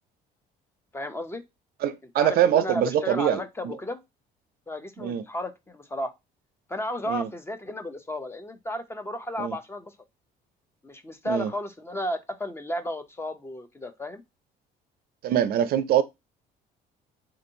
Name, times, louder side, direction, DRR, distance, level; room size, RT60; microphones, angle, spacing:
voice 1, 0.9-1.4 2.2-4.0 4.7-6.1 6.7-9.9 10.8-14.2, left 1 dB, 15° left, 0.4 m, -33 dB
voice 2, 1.8-3.7 5.0-5.2 7.1-7.3 9.4-9.5 11.2-11.5 15.2-16.0, right 10 dB, 60° right, 0.4 m, -24 dB
3.6 x 2.6 x 2.6 m
cardioid pair, 110°, 17 cm